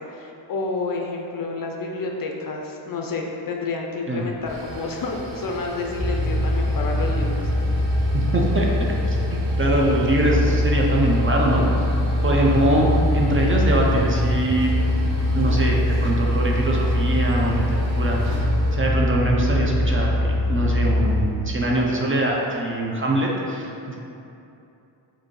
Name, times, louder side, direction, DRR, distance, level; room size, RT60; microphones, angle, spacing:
voice 1, 0.1-7.5, left 3 dB, 50° left, 1 dB, 0.5 m, -29 dB
sound 1, 4.3-18.8, right 1 dB, 85° right, 0.7 m, -38 dB
sound 2, 5.9-21.3, left 1 dB, 55° right, 1.0 m, -22 dB
voice 2, 8.1-11.6 12.2-14.7 15.3-18.5 18.7-23.9, right 1 dB, 30° right, -2 dB, 0.5 m, -23 dB
5.0 x 2.7 x 3.0 m, 2.8 s
wide cardioid pair, 95°, 45 cm